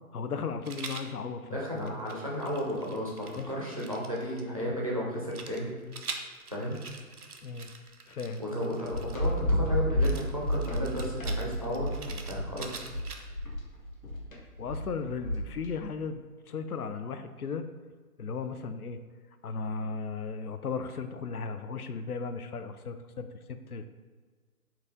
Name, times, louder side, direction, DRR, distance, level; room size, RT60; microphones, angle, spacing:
voice 1, 0.1-1.9 3.3-3.5 7.4-7.7 8.1-8.4 14.6-17.6 18.2-19.0 19.4-23.9, left 5 dB, 80° left, 9 dB, 0.5 m, -36 dB
Rattle, 0.6-1.1 1.8-4.4 5.3-9.4 10.0-13.5, right 4 dB, 75° right, 0.7 m, -44 dB
voice 2, 1.4-5.8 6.1-6.2 6.5-6.8 8.4-12.9, equal, 25° right, -4 dB, 0.5 m, -34 dB
sound 1, 8.9-15.7, left 1 dB, 65° left, 1.1 m, -31 dB
4.5 x 2.7 x 3.7 m, 1.5 s
figure-of-eight pair, 140°, 45 cm